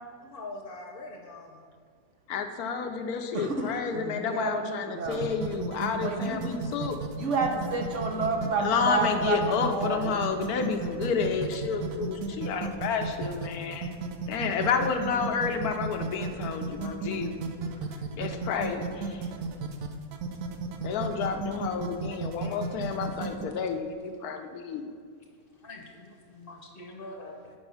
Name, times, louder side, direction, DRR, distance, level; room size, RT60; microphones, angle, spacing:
voice 1, 0.2-1.7 25.6-27.5, left 2 dB, 40° left, 1 dB, 1.0 m, -43 dB
voice 2, 2.3-7.0 8.6-13.9 14.3-17.3 18.2-19.2 20.8-24.9, left 6 dB, 80° left, 5 dB, 1.2 m, -30 dB
voice 3, 3.3-5.3 5.9-6.4 7.1-10.1, right 3 dB, 60° right, 2 dB, 1.0 m, -30 dB
sound 1, 5.0-23.5, right 5 dB, 80° right, 1.2 m, -34 dB
8.8 x 5.4 x 5.6 m, 2.1 s
omnidirectional pair, 1.6 m